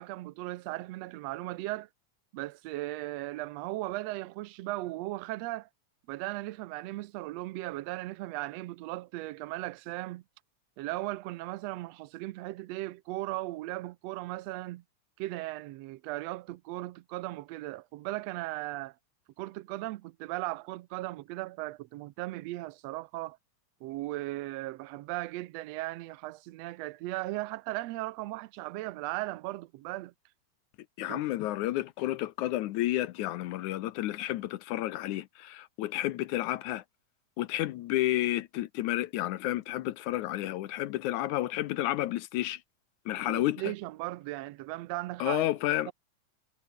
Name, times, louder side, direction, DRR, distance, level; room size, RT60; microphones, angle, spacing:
voice 1, 0.0-1.9 2.3-5.7 6.1-10.2 10.8-14.8 15.2-19.0 19.4-23.4 23.8-30.1 31.1-31.2 43.3-45.5 45.9-46.0, right 18 dB, 80° right, 1.5 m, -37 dB
voice 2, 31.0-36.8 37.4-42.6 43.1-43.7 45.2-45.9, left 15 dB, 75° left, 2.1 m, -31 dB
omnidirectional pair, 3.6 m